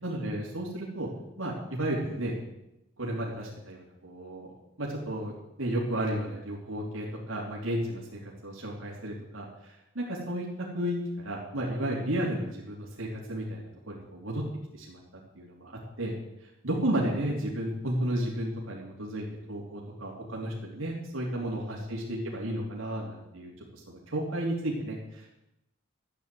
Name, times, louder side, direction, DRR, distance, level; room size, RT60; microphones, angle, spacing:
voice 1, 0.0-1.1 1.4-2.4 3.0-4.5 4.8-13.6 13.9-14.4 14.7-15.0 15.3-16.1 16.6-25.3, right 1 dB, 75° right, -3 dB, 3.2 m, -33 dB
14.0 x 9.6 x 7.7 m, 0.87 s
head